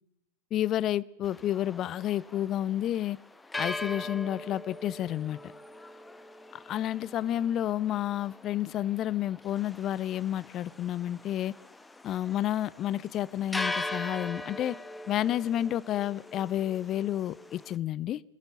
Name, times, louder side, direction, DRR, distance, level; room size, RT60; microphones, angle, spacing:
voice 1, 0.5-3.2 3.6-5.4 6.7-11.5 12.0-14.8 15.1-18.2, left 12 dB, 30° left, 0.6 m, -30 dB
sound 1, 1.2-17.8, left 2 dB, 10° left, 1.0 m, -41 dB
22.5 x 16.0 x 7.1 m
figure-of-eight pair, 90°, 0 cm